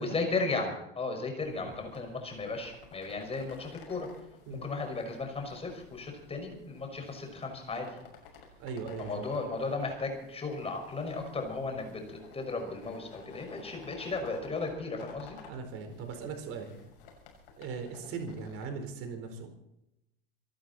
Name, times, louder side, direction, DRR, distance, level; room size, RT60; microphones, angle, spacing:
voice 1, 0.0-4.1 4.5-7.9 9.0-15.4, left 3 dB, 20° left, 3 dB, 5.8 m, -35 dB
sound 1, 1.4-18.6, left 4 dB, 70° left, 6.7 m, -54 dB
voice 2, 8.6-9.3 15.5-16.7 17.6-19.5, right 5 dB, 50° right, 5 dB, 4.3 m, -39 dB
26.5 x 12.0 x 4.4 m, 0.85 s
hypercardioid pair, 85°, 30 cm